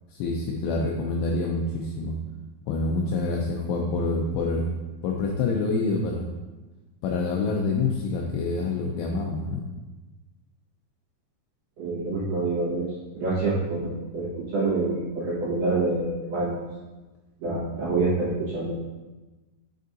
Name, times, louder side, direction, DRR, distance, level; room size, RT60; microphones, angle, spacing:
voice 1, 0.1-2.2 2.7-4.7 5.0-6.3 7.0-9.6, left 3 dB, 90° left, 0 dB, 2.7 m, -26 dB
voice 2, 11.8-12.9 13.2-16.6 17.4-18.7, right 3 dB, 65° right, -9 dB, 2.6 m, -26 dB
7.7 x 5.2 x 2.6 m, 1.2 s
omnidirectional pair, 6.0 m